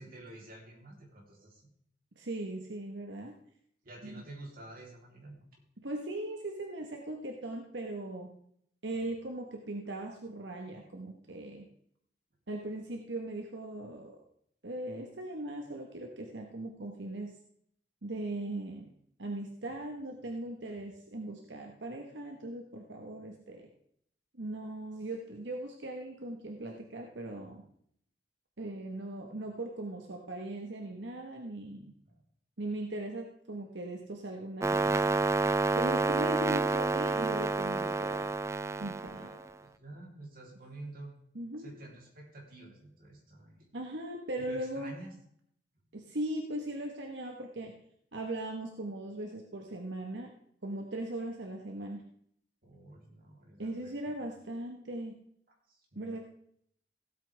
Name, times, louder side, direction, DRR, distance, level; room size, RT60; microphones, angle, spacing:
voice 1, 0.0-1.7 3.8-5.4 9.0-9.1 32.0-32.2 39.1-41.1 41.6-43.7 44.4-45.1 52.6-54.3 55.7-56.1, right 2 dB, 55° right, -1 dB, 3.3 m, -49 dB
voice 2, 2.1-3.4 4.0-4.2 5.8-8.3 8.8-11.7 12.5-14.2 14.6-17.4 18.0-18.9 19.2-23.7 24.4-27.7 28.6-31.9 32.6-35.2 35.7-38.3 38.8-39.3 41.3-41.7 43.7-45.0 45.9-47.7 48.1-50.3 50.6-52.0 53.6-55.2 55.9-56.3, right 1 dB, 85° right, 1 dB, 1.2 m, -39 dB
sound 1, 34.6-39.5, right 3 dB, 15° right, 0.4 m, -29 dB
16.5 x 8.4 x 3.4 m, 0.68 s
head